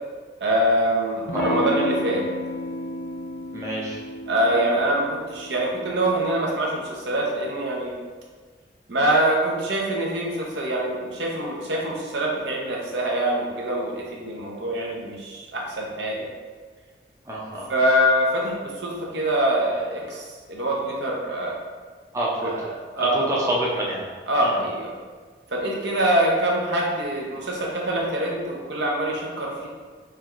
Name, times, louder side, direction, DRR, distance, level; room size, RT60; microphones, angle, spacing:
voice 1, 0.4-2.2 4.3-7.9 8.9-16.3 17.7-21.6 22.4-22.6 23.0-23.5 24.3-25.0 25.5-29.7, right 1 dB, 85° right, -2 dB, 0.8 m, -24 dB
Electric guitar / Strum, 1.3-6.4, left 1 dB, 55° left, 0.4 m, -32 dB
voice 2, 3.5-4.0 17.3-17.7 22.1-22.7 23.0-24.0 24.4-24.6, right 1 dB, 15° right, -4 dB, 0.5 m, -27 dB
4.6 x 3.3 x 2.4 m, 1.5 s
head